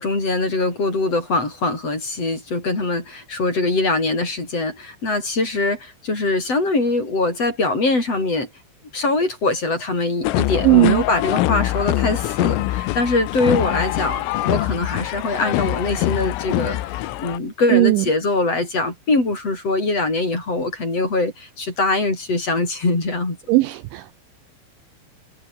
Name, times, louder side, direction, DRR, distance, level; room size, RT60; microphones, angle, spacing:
voice 1, 0.0-8.5 8.9-23.4, left 2 dB, 30° left, 7.9 m, -22 dB
sound 1, 10.2-17.4, left 16 dB, 85° left, 3.9 m, -23 dB
voice 2, 10.6-11.0 17.7-18.0 23.5-24.2, right 19 dB, 80° right, 2.9 m, -16 dB
omnidirectional pair, 5.9 m